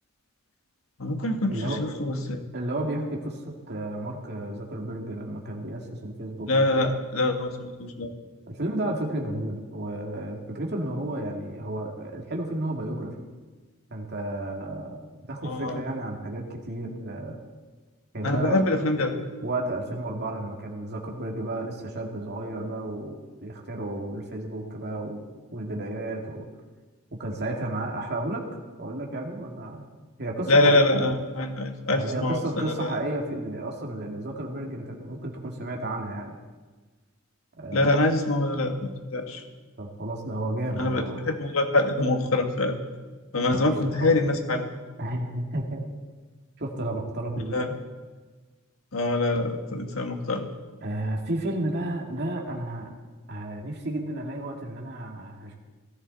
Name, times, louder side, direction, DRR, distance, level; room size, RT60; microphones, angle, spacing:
voice 1, 1.0-2.4 6.5-8.1 15.4-15.8 18.2-19.1 30.5-32.9 37.7-39.4 40.8-42.7 43.3-44.6 47.5-47.7 48.9-50.5, left 2 dB, 90° left, 4 dB, 1.7 m, -24 dB
voice 2, 2.5-6.8 8.5-13.3 13.9-15.0 15.3-17.4 18.1-18.6 19.0-19.1 19.4-26.5 27.1-28.4 28.8-29.8 30.2-31.0 31.9-36.3 37.6-38.0 39.8-41.3 43.5-44.2 45.0-45.8 46.6-47.8 50.8-52.9 53.3-55.6, right 1 dB, 55° right, 0 dB, 2.2 m, -32 dB
17.5 x 14.0 x 4.1 m, 1.3 s
head